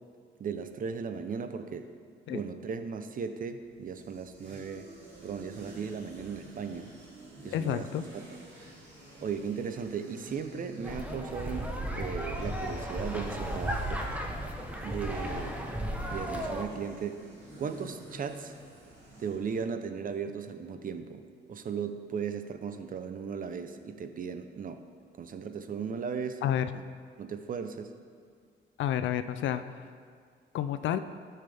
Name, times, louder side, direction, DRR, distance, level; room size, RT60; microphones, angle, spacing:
voice 1, 0.4-1.9 2.3-4.9 5.2-6.9 7.4-7.9 8.1-8.2 9.2-14.1 14.8-15.5 16.0-17.2 17.6-18.5 19.2-21.2 21.5-24.8 25.2-26.4 26.7-26.8 27.2-27.9, right 6 dB, 45° right, 9 dB, 0.6 m, -36 dB
sound 1, 3.7-19.6, right 1 dB, 75° right, 2.4 m, -49 dB
voice 2, 7.5-8.0 26.4-26.7 28.8-29.8 30.5-31.0, left 10 dB, 70° left, 11 dB, 0.4 m, -30 dB
sound 2, 10.8-16.6, equal, 5° right, 0.9 m, -35 dB
12.0 x 5.7 x 3.5 m, 2.1 s
cardioid pair, 90°, 20 cm